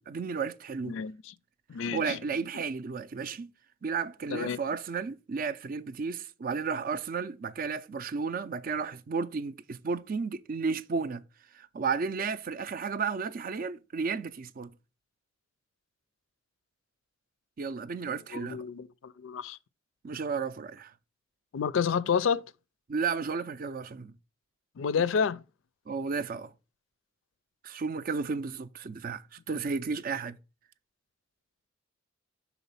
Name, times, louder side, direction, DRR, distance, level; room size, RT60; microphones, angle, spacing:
voice 1, 0.0-1.0 1.9-3.5 3.8-11.2 11.5-14.7 17.6-18.6 20.0-20.9 22.9-24.1 25.9-26.5 27.6-30.4, right 5 dB, 45° right, 0.4 m, -33 dB
voice 2, 0.9-1.3 1.7-2.2 4.3-4.6 18.1-19.6 21.5-22.4 24.8-25.4, left 6 dB, 75° left, 0.4 m, -30 dB
5.9 x 4.1 x 5.5 m
head